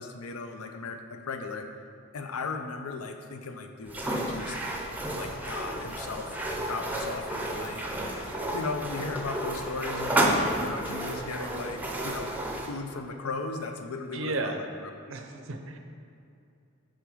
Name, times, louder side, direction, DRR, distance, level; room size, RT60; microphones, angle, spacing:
voice 1, 0.0-1.7 2.1-4.7 5.2-12.3 12.7-14.9, left 4 dB, 80° left, 6 dB, 0.6 m, -37 dB
sound 1, 3.9-12.7, right 1 dB, 10° right, 0.6 m, -31 dB
voice 2, 14.1-14.6 15.1-15.8, right 2 dB, 60° right, 5 dB, 0.6 m, -33 dB
6.4 x 4.8 x 4.9 m, 2.6 s
head